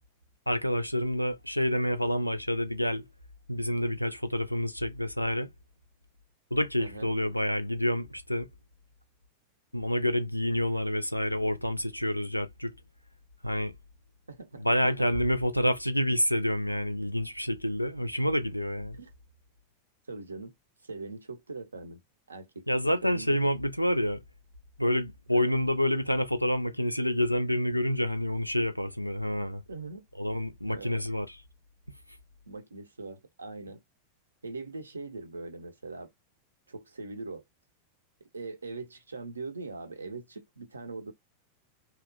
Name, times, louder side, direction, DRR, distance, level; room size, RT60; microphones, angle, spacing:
voice 1, 0.5-3.0 3.5-5.5 6.5-8.5 9.7-12.8 13.4-13.7 14.6-19.0 22.7-24.2 24.8-29.6 30.2-31.4, left 1 dB, 90° left, 0.3 m, -28 dB
voice 2, 6.8-7.1 14.3-14.7 19.0-19.1 20.1-20.5 20.8-22.0 22.3-23.5 25.3-25.6 29.7-30.1 30.7-31.0 32.5-33.8 34.4-36.1 36.7-37.4 38.3-41.1, right 3 dB, 75° right, 0.5 m, -41 dB
2.8 x 2.1 x 2.4 m
figure-of-eight pair, 90°, 0 cm